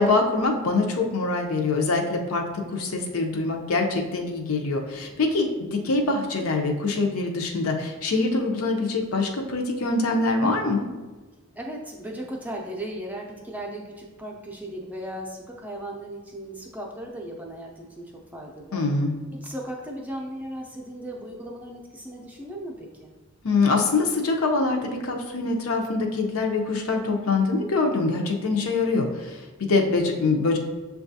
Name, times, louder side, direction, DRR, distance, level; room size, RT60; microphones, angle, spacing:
voice 1, 0.0-10.9 18.7-19.2 23.4-30.6, left 3 dB, 80° left, 2 dB, 0.6 m, -24 dB
voice 2, 11.5-18.8 19.3-23.1, right 1 dB, 5° right, -1 dB, 0.4 m, -37 dB
6.8 x 2.3 x 2.7 m, 1.2 s
head